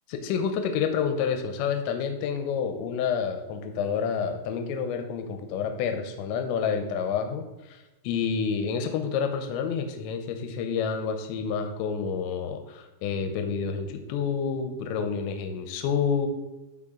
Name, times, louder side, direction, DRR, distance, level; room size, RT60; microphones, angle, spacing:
voice 1, 0.1-7.4 8.0-16.3, left 6 dB, 80° left, 6 dB, 2.8 m, -28 dB
12.5 x 4.2 x 3.8 m, 1.1 s
omnidirectional pair, 5.9 m